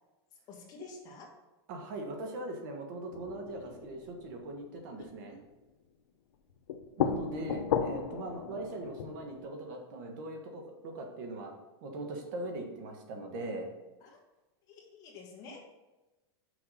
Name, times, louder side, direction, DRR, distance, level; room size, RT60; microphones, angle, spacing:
voice 1, 0.5-1.3 3.6-3.7 5.2-5.4 14.0-14.2 14.7-15.6, left 3 dB, 25° left, -1 dB, 1.5 m, -49 dB
voice 2, 1.7-5.4 7.0-11.5 11.8-13.7, right 2 dB, 45° right, 3 dB, 1.4 m, -40 dB
sound 1, 3.1-5.1 6.5-9.4, left 8 dB, 80° left, 0.8 m, -35 dB
6.3 x 5.7 x 5.5 m, 1.1 s
supercardioid pair, 170°, 14 cm